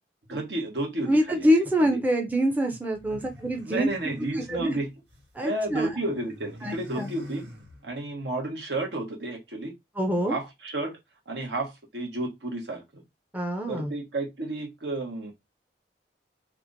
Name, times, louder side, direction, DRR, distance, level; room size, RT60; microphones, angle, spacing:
voice 1, 0.3-1.5 1.8-2.0 3.1-3.2 3.6-4.9 5.4-7.4 7.8-9.7 10.3-11.0 11.3-13.0 13.7-15.3, right 2 dB, 70° right, 1.2 m, -32 dB
voice 2, 1.1-3.9 4.5-4.8 5.4-5.9 6.6-7.1 10.0-10.4 13.3-13.9, equal, 10° right, 0.6 m, -25 dB
sound 1, 2.9-5.3 5.6-8.2, left 1 dB, 90° right, 1.7 m, -46 dB
2.9 x 2.5 x 3.8 m
head